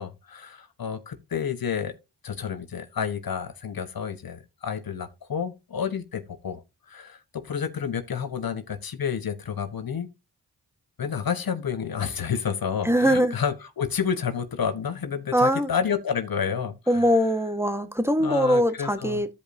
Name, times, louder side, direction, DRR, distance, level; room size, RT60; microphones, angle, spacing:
voice 1, 0.0-1.9 2.2-10.1 11.0-17.1 18.2-19.2, left 7 dB, 65° left, 1.2 m, -30 dB
voice 2, 12.8-13.3 15.3-15.7 16.9-19.3, equal, 5° right, 1.5 m, -22 dB
13.5 x 5.3 x 2.8 m
cardioid pair, 45°, 39 cm